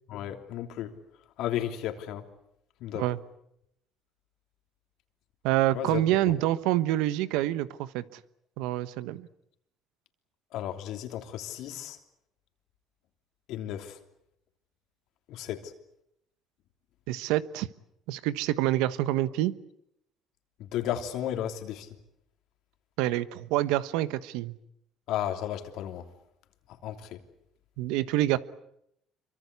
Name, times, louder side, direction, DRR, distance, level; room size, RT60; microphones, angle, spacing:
voice 1, 0.1-0.9 1.4-2.2 2.8-3.0 5.7-6.0 10.5-12.0 13.5-14.0 15.3-15.7 20.6-21.9 25.1-26.0 26.8-27.2, left 11 dB, 75° left, 6 dB, 3.1 m, -33 dB
voice 2, 5.4-8.2 8.6-9.3 17.1-17.7 18.1-19.5 23.0-24.5 27.8-28.4, right 14 dB, 85° right, 15 dB, 1.2 m, -27 dB
26.0 x 24.0 x 8.3 m, 0.78 s
supercardioid pair, 90°, 0 cm